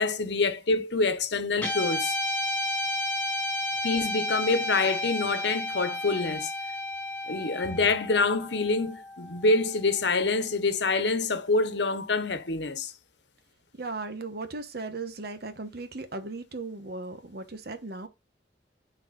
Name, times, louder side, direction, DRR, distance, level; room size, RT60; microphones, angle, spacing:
voice 1, 0.0-2.2 3.8-6.5 7.3-12.9, left 3 dB, 80° left, 1.1 m, -26 dB
Guitar, 1.6-10.1, left 2 dB, 10° left, 2.8 m, -32 dB
voice 2, 13.8-18.1, right 3 dB, 65° right, 1.3 m, -37 dB
12.0 x 4.8 x 2.5 m
head